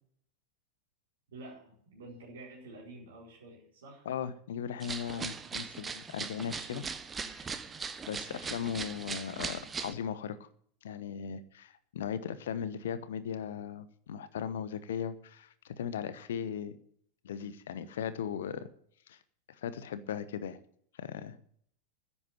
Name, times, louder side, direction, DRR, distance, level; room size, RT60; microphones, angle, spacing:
voice 1, 1.3-4.0, right 2 dB, 60° right, -5 dB, 4.8 m, -49 dB
voice 2, 4.0-6.8 7.3-7.6 8.1-10.4 10.8-16.8 17.2-18.7 19.1-19.2 19.6-20.6 21.0-21.4, left 8 dB, 60° left, 14 dB, 1.0 m, -38 dB
sound 1, 4.8-9.9, right 5 dB, 20° right, 1.0 m, -39 dB
10.5 x 8.6 x 9.4 m, 0.64 s
figure-of-eight pair, 90°, 0 cm